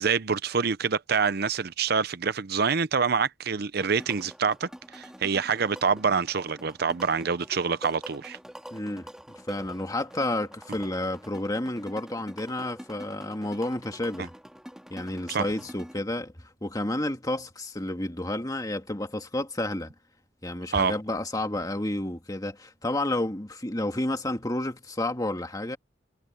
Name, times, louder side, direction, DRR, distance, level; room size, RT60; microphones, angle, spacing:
voice 1, 0.0-8.4 15.3-15.5 20.7-20.9, right 5 dB, 55° right, 0.7 m, -26 dB
sound 1, 3.8-16.0, equal, 5° right, 3.2 m, -45 dB
voice 2, 8.7-9.1 9.5-14.3 14.9-16.3 16.6-19.9 20.4-25.8, left 1 dB, 20° left, 2.0 m, -30 dB
head